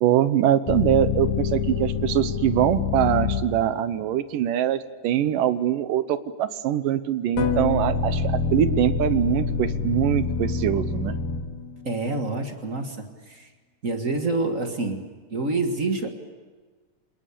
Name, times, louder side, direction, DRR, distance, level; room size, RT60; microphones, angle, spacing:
voice 1, 0.0-11.2, right 11 dB, 75° right, 13 dB, 2.4 m, -23 dB
sound 1, 0.7-3.8 7.4-11.9, left 5 dB, 90° left, 3.2 m, -26 dB
voice 2, 11.8-13.5 13.8-16.1, right 3 dB, 40° right, 5 dB, 1.1 m, -27 dB
27.0 x 19.5 x 8.5 m, 1.4 s
omnidirectional pair, 4.0 m